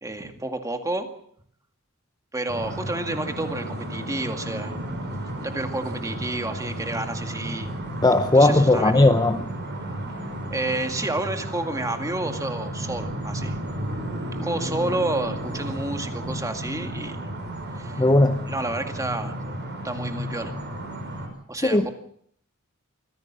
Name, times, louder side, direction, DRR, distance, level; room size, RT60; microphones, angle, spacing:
voice 1, 0.0-1.1 2.3-4.8 5.4-7.7 8.3-9.1 9.8-10.0 10.5-13.5 14.4-17.2 17.8-18.0 18.5-19.4 19.8-20.6 21.5-21.9, right 2 dB, 15° right, 2.1 m, -30 dB
sound 1, 2.5-21.3, right 1 dB, 50° right, 5.9 m, -33 dB
voice 2, 8.0-9.4 18.0-18.5 21.7-21.9, left 2 dB, 20° left, 0.8 m, -17 dB
24.5 x 16.0 x 7.5 m
head